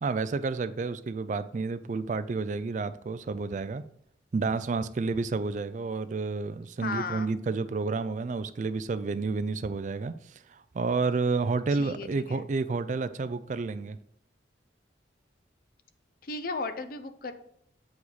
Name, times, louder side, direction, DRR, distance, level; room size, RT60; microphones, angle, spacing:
voice 1, 0.0-3.8 4.3-14.0, right 4 dB, 40° right, 0.3 m, -30 dB
voice 2, 6.8-7.4 11.7-12.4 16.2-17.3, left 3 dB, 50° left, 0.6 m, -35 dB
8.4 x 4.8 x 4.0 m
head